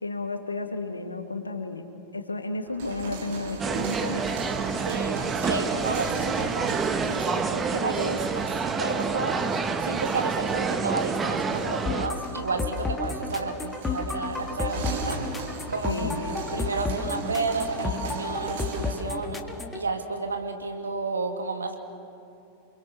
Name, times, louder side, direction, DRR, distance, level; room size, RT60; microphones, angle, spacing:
voice 1, 0.0-1.9 2.1-4.3 15.6-16.2, left 3 dB, 80° left, 7 dB, 1.9 m, -32 dB
sound 1, 2.7-19.1, right 5 dB, 55° right, 3.3 m, -38 dB
sound 2, 3.6-12.1, right 5 dB, 20° right, 1.4 m, -28 dB
voice 2, 4.9-9.4 9.8-15.2 15.7-19.4 19.7-21.8, right 3 dB, 75° right, 5 dB, 2.3 m, -32 dB
sound 3, 11.9-19.8, left 4 dB, 10° left, 2.1 m, -32 dB
28.5 x 22.5 x 6.9 m, 2.9 s
figure-of-eight pair, 90°, 0 cm